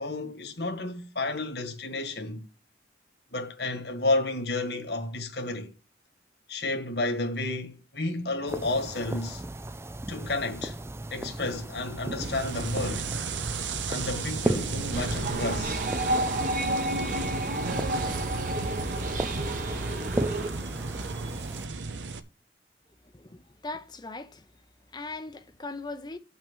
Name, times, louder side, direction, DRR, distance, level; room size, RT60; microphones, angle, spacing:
voice 1, 0.0-2.4 3.3-5.7 6.5-9.4 10.1-10.8 11.1-13.1 13.9-15.8, left 2 dB, 65° left, 1.7 m, -31 dB
sound 1, 8.5-21.7, right 1 dB, 15° right, 0.4 m, -36 dB
sound 2, 12.2-22.2, right 4 dB, 85° right, 0.8 m, -35 dB
sound 3, 14.9-20.5, right 1 dB, 45° right, 1.4 m, -30 dB
voice 2, 22.9-24.5 24.9-26.2, left 3 dB, 25° left, 0.7 m, -40 dB
8.5 x 6.1 x 6.2 m
head